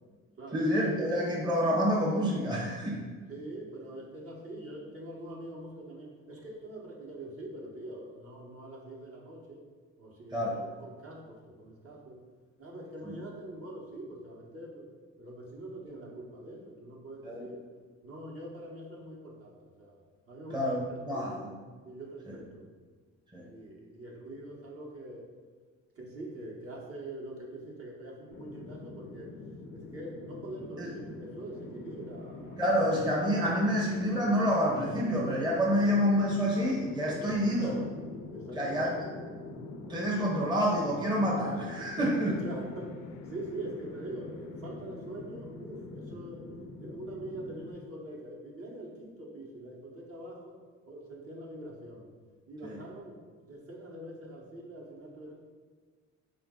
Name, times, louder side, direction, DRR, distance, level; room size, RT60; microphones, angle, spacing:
voice 1, 0.5-3.0 10.3-10.6 17.2-17.5 20.5-20.8 21.1-21.5 23.3-23.4 30.8-30.9 32.6-37.7 38.5-38.9 39.9-42.4 52.6-52.8, equal, 15° right, -4 dB, 0.8 m, -28 dB
voice 2, 3.3-9.6 10.0-12.2 12.6-14.9 15.2-17.6 18.0-20.0 20.3-21.5 21.8-22.6 23.3-25.3 25.9-29.3 29.7-32.7 32.9-33.5 37.1-37.9 38.3-39.1 42.2-43.0 43.3-46.4 46.8-50.6 50.9-52.1 52.5-55.4, right 1 dB, 50° right, -3 dB, 1.0 m, -44 dB
sound 1, 28.3-47.7, left 3 dB, 70° left, 0.5 m, -44 dB
4.0 x 2.5 x 3.6 m, 1.5 s
cardioid pair, 90°, 30 cm